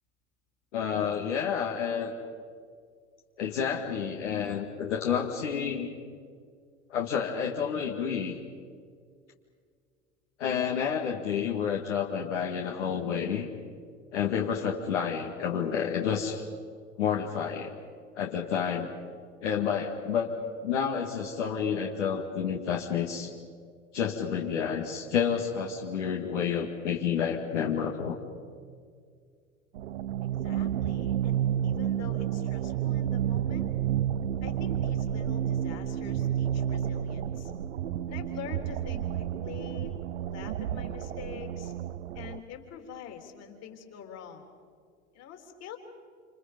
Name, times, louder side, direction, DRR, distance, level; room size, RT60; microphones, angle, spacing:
voice 1, 0.7-2.1 3.4-5.9 6.9-8.4 10.4-13.5 14.1-16.4 17.0-17.7 18.2-18.9 19.4-20.3 20.6-23.3 23.9-28.2, left 7 dB, 75° left, 0 dB, 2.2 m, -29 dB
sound 1, 29.7-42.4, right 10 dB, 75° right, 0.9 m, -30 dB
voice 2, 30.2-33.7 34.4-37.5 38.1-39.9 40.3-41.7 42.1-44.5 45.1-45.8, left 8 dB, 45° left, 4 dB, 3.8 m, -45 dB
28.0 x 27.5 x 5.3 m, 2.1 s
figure-of-eight pair, 80°, 36 cm